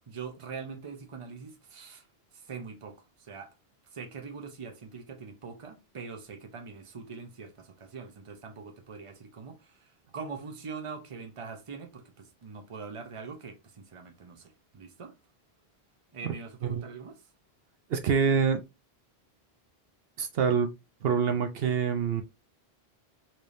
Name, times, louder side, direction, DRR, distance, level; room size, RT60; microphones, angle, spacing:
voice 1, 0.1-2.1 2.3-3.5 3.9-15.1 16.1-17.2, right 5 dB, 35° right, 0.8 m, -43 dB
voice 2, 17.9-18.6 20.2-20.7 21.0-22.2, right 6 dB, 70° right, 0.8 m, -26 dB
4.3 x 3.3 x 2.6 m
omnidirectional pair, 1.1 m